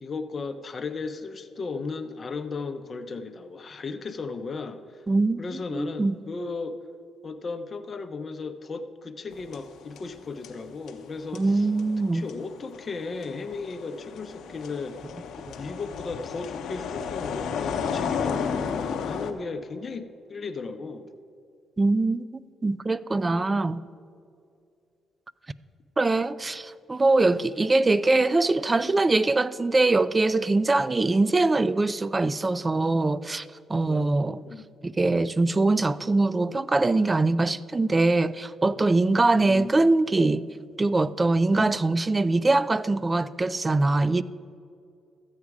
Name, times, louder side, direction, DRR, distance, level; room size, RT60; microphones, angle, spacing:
voice 1, 0.0-5.0 5.4-6.8 7.2-11.7 12.1-15.0 15.6-21.1 33.9-34.7 39.3-39.8 41.5-41.8, left 4 dB, 40° left, 0.7 m, -35 dB
voice 2, 5.1-5.4 5.7-6.2 11.3-12.3 21.8-22.2 22.6-23.8 26.0-34.4 34.8-40.4 40.8-44.2, right 2 dB, 25° right, 0.3 m, -23 dB
sound 1, 9.3-10.2 10.4-19.3, left 6 dB, 75° left, 0.8 m, -33 dB
13.0 x 8.1 x 4.8 m
cardioid pair, 90°, 0 cm